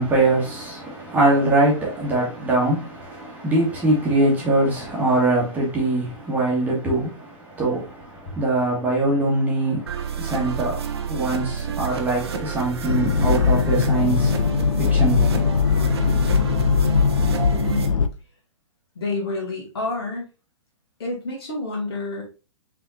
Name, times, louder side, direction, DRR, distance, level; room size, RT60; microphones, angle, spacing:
voice 1, 0.0-14.4 14.8-15.5, right 2 dB, 10° right, 1.4 m, -22 dB
sound 1, 9.9-17.9, right 7 dB, 55° right, 0.7 m, -30 dB
sound 2, 12.9-18.1, left 5 dB, 75° left, 0.4 m, -20 dB
voice 2, 17.6-18.0 19.0-20.2 21.0-22.2, left 2 dB, 50° left, 2.0 m, -29 dB
5.6 x 3.5 x 2.6 m
figure-of-eight pair, 115°, 17 cm